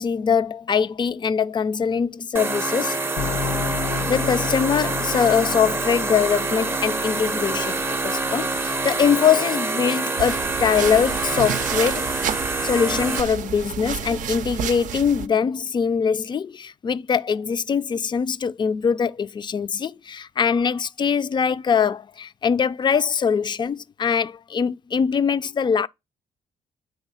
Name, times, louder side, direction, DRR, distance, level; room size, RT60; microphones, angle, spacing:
voice 1, 0.0-3.0 4.1-12.1 12.6-25.9, left 6 dB, 35° left, 0.4 m, -22 dB
sound 1, 2.3-13.2, right 3 dB, 15° right, 0.5 m, -26 dB
sound 2, 3.2-9.2, left 7 dB, 75° left, 1.1 m, -33 dB
sound 3, 10.2-15.3, right 9 dB, 75° right, 0.4 m, -30 dB
9.0 x 3.2 x 5.5 m
cardioid pair, 80°, 13 cm